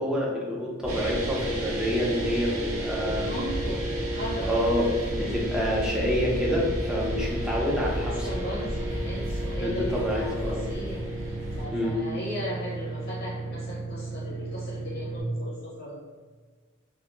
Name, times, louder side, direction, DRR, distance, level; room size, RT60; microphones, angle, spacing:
voice 1, 0.0-3.3 4.5-8.3 9.6-10.6 11.7-12.0, equal, 5° right, -4 dB, 0.4 m, -27 dB
sound 1, 0.8-11.6, equal, 35° right, 0.8 m, -35 dB
sound 2, 0.9-15.2, right 2 dB, 80° right, 0.5 m, -34 dB
voice 2, 3.0-4.5 8.0-16.0, equal, 50° left, -7 dB, 0.5 m, -37 dB
Aircraft, 3.2-9.9, left 1 dB, 20° left, 0.9 m, -37 dB
2.2 x 2.1 x 2.9 m, 1.5 s
head